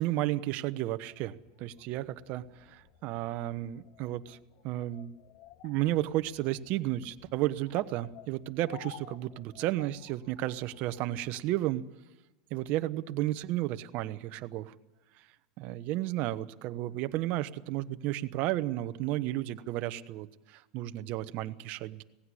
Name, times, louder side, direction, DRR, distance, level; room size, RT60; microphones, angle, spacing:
voice 1, 0.0-4.4 4.6-5.1 5.6-11.8 12.5-14.7 15.6-22.0, right 15 dB, 45° right, 12 dB, 1.0 m, -33 dB
sound 1, 1.0-11.3, left 11 dB, 50° left, 1.0 m, -55 dB
17.5 x 16.0 x 9.9 m, 1.1 s
supercardioid pair, 140°, 4 cm